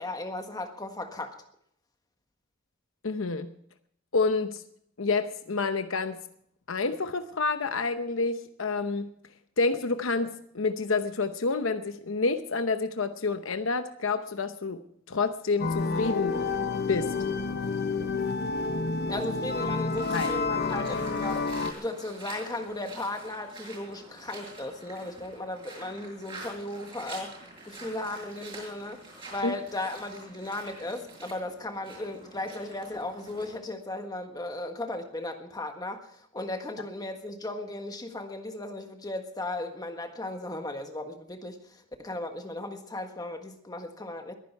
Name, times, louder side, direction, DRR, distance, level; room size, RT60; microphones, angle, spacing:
voice 1, 0.0-1.3 19.1-27.3 27.6-29.0 29.3-36.1 36.3-41.6 42.0-44.3, left 2 dB, 20° left, 5 dB, 1.6 m, -36 dB
voice 2, 3.0-3.5 4.1-4.6 5.0-6.2 6.7-9.1 9.6-14.8 15.1-16.4 16.9-17.1 20.1-20.3 29.4-29.5, left 4 dB, 85° left, 9 dB, 0.9 m, -28 dB
sound 1, 15.6-21.7, left 4 dB, 55° left, 1.0 m, -29 dB
sound 2, 19.9-33.6, right 2 dB, 25° right, 7.1 m, -46 dB
22.0 x 10.0 x 4.6 m, 0.69 s
head